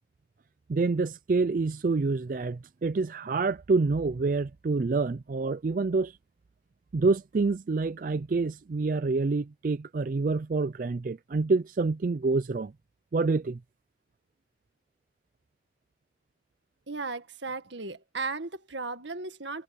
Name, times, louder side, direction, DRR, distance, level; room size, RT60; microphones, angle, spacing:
voice 1, 0.7-6.1 6.9-12.7 13.1-13.6, right 3 dB, 45° right, 0.4 m, -27 dB
voice 2, 16.9-19.6, right 3 dB, 75° right, 1.9 m, -36 dB
head